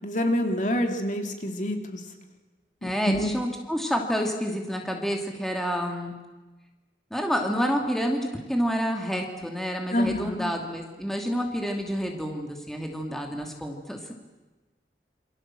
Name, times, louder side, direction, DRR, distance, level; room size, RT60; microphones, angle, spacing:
voice 1, 0.0-2.0 2.8-3.3 9.9-10.5, left 1 dB, 45° left, 4 dB, 2.7 m, -27 dB
voice 2, 2.8-6.1 7.1-14.0, equal, ahead, 2 dB, 2.7 m, -28 dB
27.5 x 25.5 x 7.7 m, 1.2 s
head